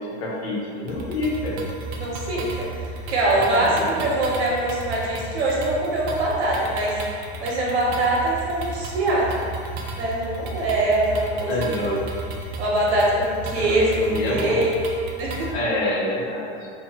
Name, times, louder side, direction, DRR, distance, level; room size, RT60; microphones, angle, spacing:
voice 1, 0.0-1.6 3.6-4.1 11.5-12.0 13.5-14.7 15.5-16.5, left 1 dB, 70° left, -4 dB, 0.9 m, -27 dB
sound 1, 0.9-15.5, right 2 dB, 65° right, 0.5 m, -34 dB
voice 2, 1.9-6.9 7.4-9.3 9.9-12.0 12.6-14.8 15.2-15.5, right 1 dB, 90° right, -5 dB, 0.9 m, -23 dB
2.7 x 2.4 x 2.8 m, 2.3 s
supercardioid pair, 125°, 32 cm